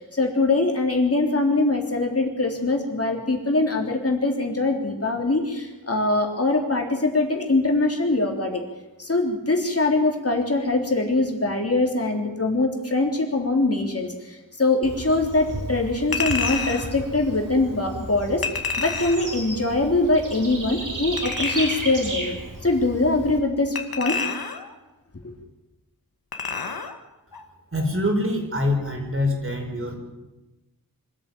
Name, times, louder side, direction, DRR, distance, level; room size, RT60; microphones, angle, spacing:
voice 1, 0.0-8.6 9.0-18.4 18.8-22.3 22.6-24.2, left 2 dB, 40° left, 2 dB, 3.6 m, -23 dB
Bird / Insect, 14.8-23.4, right 1 dB, 60° right, 5.5 m, -34 dB
Chink clink, 16.1-16.9 18.4-19.4 21.2-21.9 23.8-24.7 26.3-27.0 27.3-27.5, left 5 dB, 80° left, 2.0 m, -29 dB
voice 2, 27.7-30.0, left 1 dB, 35° right, 2 dB, 5.3 m, -24 dB
25.0 x 13.5 x 9.3 m, 1.0 s
wide cardioid pair, 90°, 35 cm